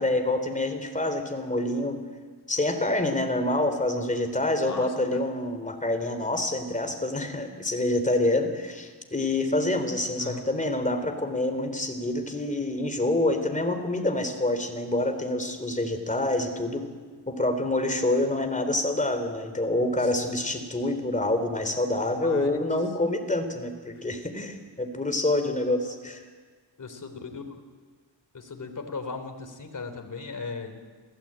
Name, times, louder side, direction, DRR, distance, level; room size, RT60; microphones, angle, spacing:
voice 1, 0.0-2.0 2.5-16.9 17.3-26.2, left 1 dB, 15° left, 6 dB, 3.6 m, -27 dB
voice 2, 4.6-5.2 10.2-10.5 20.0-20.3 21.5-21.8 22.1-22.5 26.8-27.6 28.3-30.8, left 4 dB, 45° left, 6 dB, 3.5 m, -38 dB
27.0 x 16.5 x 8.9 m, 1.5 s
cardioid pair, 80°, 44 cm